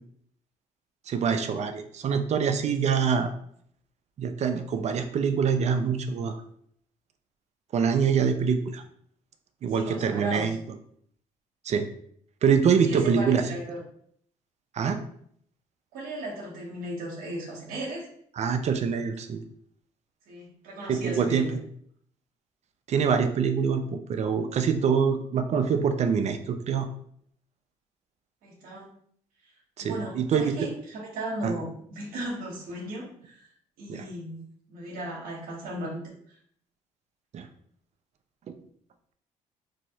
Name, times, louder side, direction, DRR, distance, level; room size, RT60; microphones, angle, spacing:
voice 1, 1.1-3.3 4.2-6.4 7.7-8.8 9.6-10.6 11.6-11.9 12.4-13.4 14.7-15.0 18.4-19.4 20.9-21.4 22.9-26.9 29.8-30.5 31.4-31.5 33.9-34.0 37.3-37.5 38.5-38.6, right 6 dB, 50° right, 8 dB, 0.5 m, -25 dB
voice 2, 9.7-10.5 12.8-13.8 15.9-18.1 20.3-21.5 28.4-28.9 29.4-29.5 29.8-33.5 33.8-34.4 34.7-36.4, right 1 dB, 80° right, -4 dB, 0.9 m, -36 dB
3.1 x 2.7 x 2.8 m, 0.64 s
supercardioid pair, 70°, 15 cm